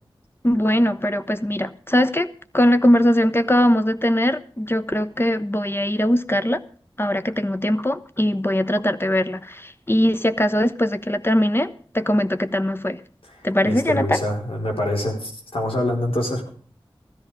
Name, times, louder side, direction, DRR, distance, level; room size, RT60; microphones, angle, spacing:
voice 1, 0.4-6.6 7.0-13.0 13.4-14.2, equal, 25° left, 1.1 m, -21 dB
voice 2, 13.6-16.5, left 1 dB, 80° left, 4.9 m, -25 dB
15.5 x 13.5 x 5.1 m
wide cardioid pair, 40°, 9 cm